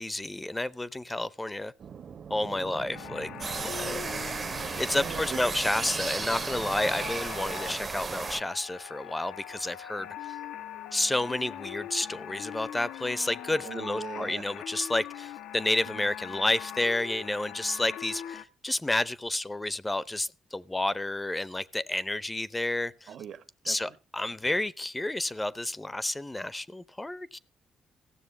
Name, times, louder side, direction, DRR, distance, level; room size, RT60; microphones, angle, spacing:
voice 1, 0.0-1.7 2.3-3.3 3.6-4.5 4.8-10.4 10.9-23.1 23.7-27.4, left 2 dB, 15° left, 0.6 m, -30 dB
sound 1, 1.8-7.1, right 7 dB, 55° right, 1.1 m, -44 dB
sound 2, 2.9-18.4, left 10 dB, 85° left, 0.8 m, -42 dB
sound 3, 3.4-8.4, right 4 dB, 35° right, 0.8 m, -34 dB
voice 2, 4.9-5.4 13.6-14.5 15.8-16.0 23.1-24.0, right 9 dB, 70° right, 1.5 m, -41 dB
15.5 x 6.8 x 6.7 m
cardioid pair, 90°, 0 cm